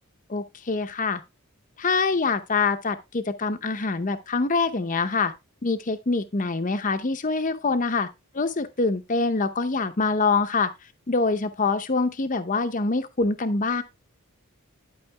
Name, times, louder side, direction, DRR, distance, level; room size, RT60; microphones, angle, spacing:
voice 1, 0.3-1.2 1.8-5.3 5.6-8.1 8.3-10.7 11.1-13.8, left 4 dB, 35° left, 0.7 m, -25 dB
11.5 x 5.5 x 3.3 m
head